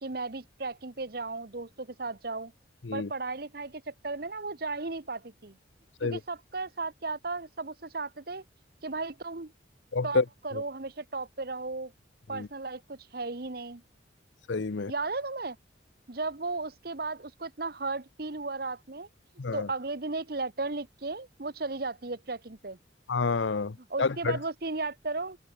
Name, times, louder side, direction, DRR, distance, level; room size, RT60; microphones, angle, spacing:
voice 1, 0.0-2.5 2.9-5.6 6.0-8.4 8.8-9.5 10.0-11.9 12.3-13.8 14.9-15.6 16.1-19.1 19.5-22.8 23.9-25.4, right 3 dB, 50° right, 1.1 m, -35 dB
voice 2, 9.9-10.2 10.5-10.6 12.3-12.5 14.5-14.9 19.4-19.7 23.1-24.4, left 4 dB, 75° left, 0.7 m, -29 dB
head